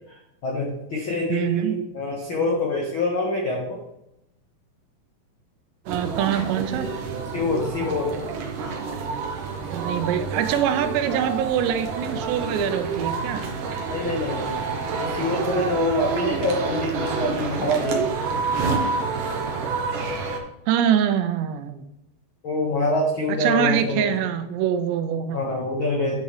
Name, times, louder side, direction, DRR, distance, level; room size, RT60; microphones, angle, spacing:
voice 1, 0.1-3.8 7.3-8.2 13.9-14.6 15.0-18.1 22.4-24.2 25.3-26.2, left 2 dB, 85° left, -2 dB, 1.1 m, -25 dB
voice 2, 1.3-1.8 5.9-6.9 9.7-13.4 20.7-21.8 23.4-25.4, right 9 dB, 90° right, 9 dB, 3.0 m, -24 dB
sound 1, 5.9-20.4, right 4 dB, 65° right, 2.3 m, -28 dB
9.9 x 8.0 x 3.3 m, 0.83 s
omnidirectional pair, 4.9 m